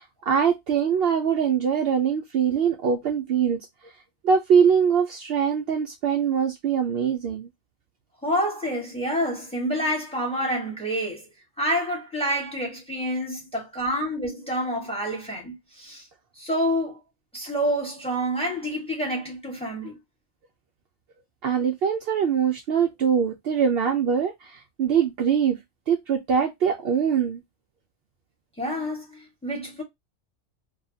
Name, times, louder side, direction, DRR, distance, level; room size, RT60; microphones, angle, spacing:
voice 1, 0.0-3.6 4.2-7.5 21.4-25.6 25.9-27.4, right 7 dB, 65° right, 0.7 m, -23 dB
voice 2, 8.2-11.3 11.6-16.0 16.4-17.0 17.3-20.0 28.6-29.8, equal, 5° left, 1.2 m, -28 dB
2.7 x 2.4 x 2.6 m
omnidirectional pair, 1.2 m